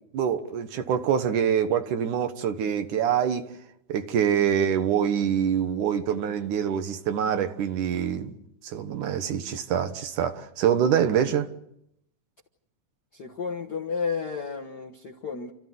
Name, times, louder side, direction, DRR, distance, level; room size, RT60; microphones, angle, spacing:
voice 1, 0.1-3.5 3.9-8.3 8.6-11.5, right 8 dB, 70° right, 2.7 m, -25 dB
voice 2, 13.1-15.5, left 5 dB, 55° left, 1.1 m, -32 dB
30.0 x 14.0 x 9.4 m
omnidirectional pair, 3.8 m